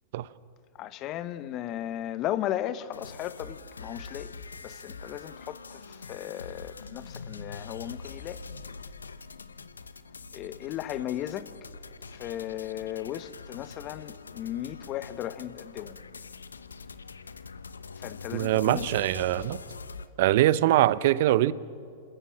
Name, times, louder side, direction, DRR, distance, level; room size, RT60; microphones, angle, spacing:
voice 1, 0.8-4.3 4.6-8.4 10.3-11.5 12.1-16.0 18.0-18.9, left 12 dB, 40° left, 1.0 m, -36 dB
sound 1, 2.9-20.1, left 4 dB, 85° left, 0.8 m, -44 dB
voice 2, 18.3-19.6 20.2-21.5, right 14 dB, 60° right, 0.6 m, -23 dB
28.0 x 13.5 x 7.5 m
hypercardioid pair, 100°, 0 cm